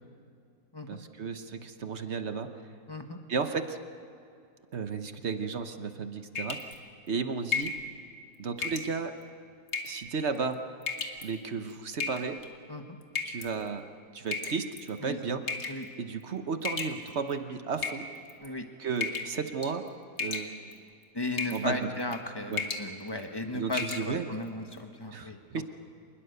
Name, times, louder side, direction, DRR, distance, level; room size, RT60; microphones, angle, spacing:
voice 1, 0.9-2.5 3.3-3.8 4.7-6.6 7.1-7.7 8.4-9.1 9.8-10.6 11.2-12.4 13.2-13.8 14.1-15.4 16.0-18.1 18.8-19.8 20.2-20.8 21.5-21.9 22.5-22.6 23.5-24.2 25.1-25.6, right 5 dB, 45° right, 8 dB, 1.1 m, -33 dB
voice 2, 2.9-3.2 12.7-13.0 15.0-15.2 15.7-15.9 18.4-18.7 21.1-25.6, left 2 dB, 15° left, 4 dB, 1.4 m, -36 dB
sound 1, 6.4-6.8 7.5-7.8 8.6-8.9 9.7-10.0 10.8-11.2 12.0-12.5 13.2-13.5 14.3-14.9 15.5-15.8 16.6-17.3 17.8-18.5 19.0-19.4 19.6-19.9 20.2-20.8 21.4-21.6 22.0-22.2 22.5-22.9 23.2-23.3 23.7-24.0, left 5 dB, 40° left, 1.8 m, -34 dB
26.5 x 20.5 x 6.8 m, 2.4 s
omnidirectional pair, 1.9 m